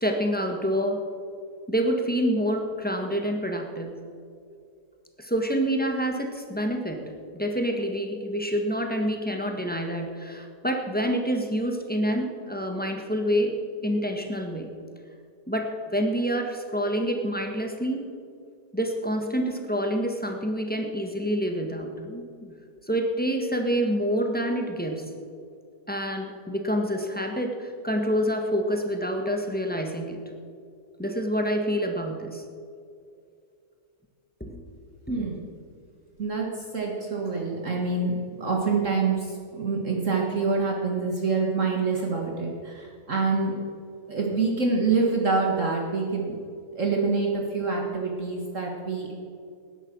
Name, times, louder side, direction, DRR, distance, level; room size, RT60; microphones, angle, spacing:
voice 1, 0.0-1.0 1.7-3.9 5.2-14.7 15.5-18.0 18.7-22.5 22.9-25.1 25.9-30.2 31.0-32.4 34.4-34.6 35.1-35.3, equal, 5° left, 3 dB, 1.4 m, -27 dB
voice 2, 35.1-35.4 36.2-43.5 44.1-46.4 46.8-49.1, right 4 dB, 50° right, -1 dB, 2.0 m, -26 dB
18.5 x 10.5 x 6.2 m, 2.4 s
omnidirectional pair, 1.8 m